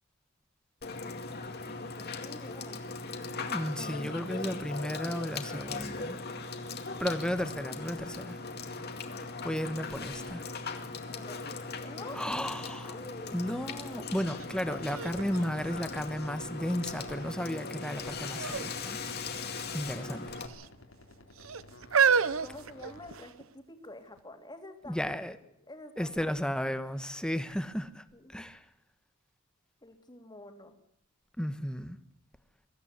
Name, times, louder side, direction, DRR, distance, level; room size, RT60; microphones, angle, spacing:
Water / Water tap faucet / Sink (filling or washing), 0.8-20.5, left 4 dB, 50° left, 2.1 m, -39 dB
voice 1, 1.6-2.8 11.1-12.3 12.9-13.3 21.1-21.2 22.1-25.2 25.7-26.3 28.1-28.3 29.8-30.7, left 2 dB, 20° left, 2.5 m, -48 dB
voice 2, 3.5-6.2 7.0-8.4 9.4-10.5 12.1-12.9 13.3-19.0 19.7-20.3 24.9-25.4 26.0-28.6 31.4-32.0, equal, 5° left, 1.2 m, -34 dB
sound 1, 13.4-17.6 17.9-23.3, left 2 dB, 90° left, 3.7 m, -54 dB
sound 2, 14.4-14.5 14.9-16.4 17.0-17.5 18.4-18.7 19.0-19.2 20.0-20.7 21.4-23.4 24.2-24.3, right 6 dB, 75° right, 0.8 m, -30 dB
23.0 x 14.5 x 8.2 m
head